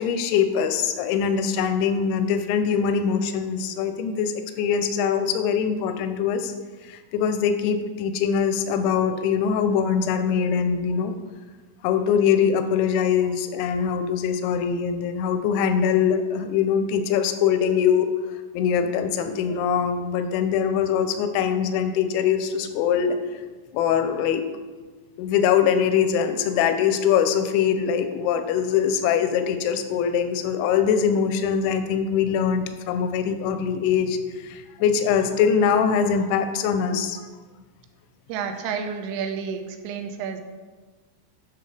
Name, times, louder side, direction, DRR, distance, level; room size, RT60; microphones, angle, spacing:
voice 1, 0.0-6.5 6.8-11.1 11.8-18.1 18.5-23.2 23.7-24.4 25.2-37.2, left 7 dB, 85° left, 8 dB, 2.7 m, -23 dB
voice 2, 38.3-40.4, right 6 dB, 90° right, 7 dB, 3.3 m, -30 dB
10.5 x 6.5 x 3.3 m, 1.4 s
omnidirectional pair, 5.7 m